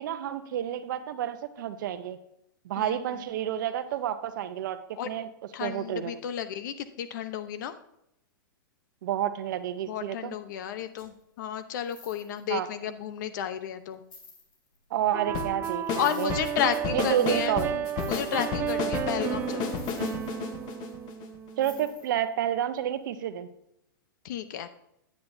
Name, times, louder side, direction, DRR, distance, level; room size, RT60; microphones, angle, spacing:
voice 1, 0.0-2.2 2.6-4.8 5.0-5.3 5.6-6.1 9.0-10.4 12.5-12.7 14.9-16.3 16.9-17.7 21.6-23.5, right 10 dB, 60° right, 11 dB, 0.8 m, -30 dB
voice 2, 5.5-7.7 9.9-14.0 16.0-19.7 24.2-24.7, left 9 dB, 60° left, 11 dB, 0.8 m, -32 dB
sound 1, 11.0-11.2 11.8-12.5 13.3-13.4 13.9-14.8 15.8-16.6 17.9-18.8 19.6-20.9 21.6-22.3 22.8-22.9, left 3 dB, 80° left, 3.1 m, -51 dB
sound 2, 15.1-21.9, right 9 dB, 20° right, 0.5 m, -33 dB
sound 3, 15.3-21.6, left 8 dB, 35° left, 1.1 m, -33 dB
9.7 x 9.3 x 2.7 m, 0.81 s
hypercardioid pair, 135°, 12 cm